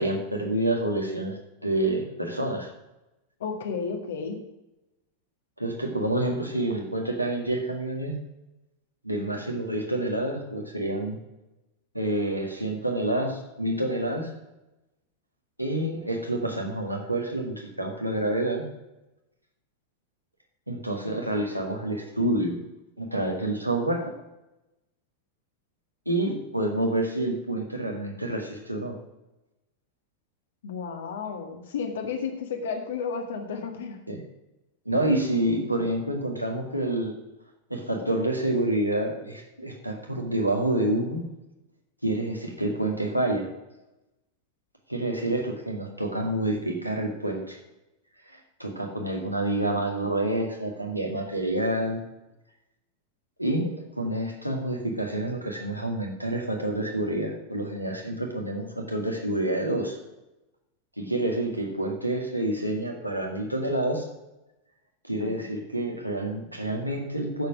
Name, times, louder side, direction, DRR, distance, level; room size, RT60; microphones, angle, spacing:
voice 1, 0.0-2.7 5.6-8.2 9.0-11.2 11.9-14.4 15.6-18.7 20.7-22.6 23.0-24.1 26.1-29.0 34.1-34.2 34.9-37.1 37.7-41.3 42.0-43.5 44.9-47.6 48.3-52.0 53.4-60.0 61.0-64.1 65.0-67.5, right 1 dB, 90° right, 1 dB, 2.0 m, -28 dB
voice 2, 3.4-4.4 30.6-34.0 65.2-65.5, left 5 dB, 60° left, 5 dB, 1.7 m, -32 dB
10.5 x 7.1 x 6.2 m, 0.95 s
figure-of-eight pair, 90°, 0 cm